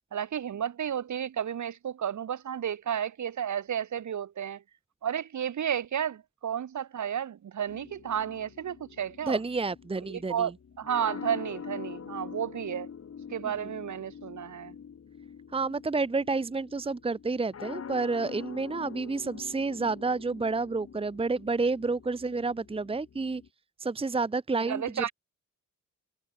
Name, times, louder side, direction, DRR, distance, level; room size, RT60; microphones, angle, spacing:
voice 1, 0.1-4.6 5.0-9.4 10.1-10.5 10.8-12.9 13.3-14.7 24.6-25.1, right 9 dB, 65° right, 4.8 m, -32 dB
sound 1, 7.7-23.5, left 7 dB, 50° left, 5.6 m, -45 dB
voice 2, 9.3-10.5 13.5-13.7 15.5-23.4 23.8-25.1, right 3 dB, 20° right, 1.1 m, -30 dB
wide cardioid pair, 140°, 31 cm